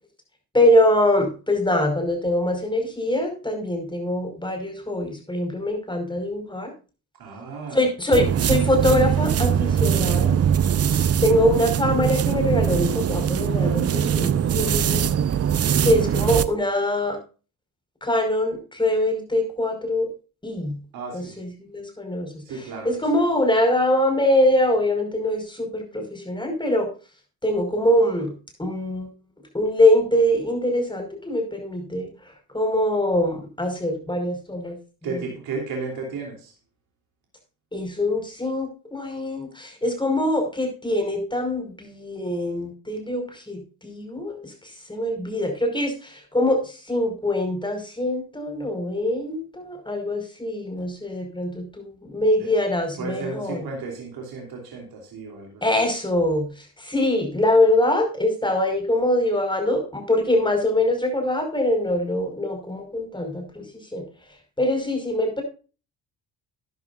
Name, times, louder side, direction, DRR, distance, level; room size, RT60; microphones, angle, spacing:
voice 1, 0.5-6.7 7.7-10.4 11.2-15.1 15.8-17.2 18.0-20.1 20.4-20.8 21.1-26.9 27.4-28.3 28.6-29.1 29.5-32.1 32.5-34.8 35.0-35.2 37.7-44.5 44.9-53.6 55.6-63.6 63.9-64.0 64.6-65.4, left 1 dB, 10° left, 4 dB, 5.3 m, -23 dB
voice 2, 7.2-7.8 20.9-21.4 22.4-22.9 35.0-36.5 52.4-52.5 53.0-55.6, right 4 dB, 70° right, 0 dB, 3.3 m, -33 dB
sound 1, 8.1-16.5, right 8 dB, 40° right, 0.7 m, -22 dB
13.0 x 10.5 x 2.6 m, 0.34 s
supercardioid pair, 60°, 38 cm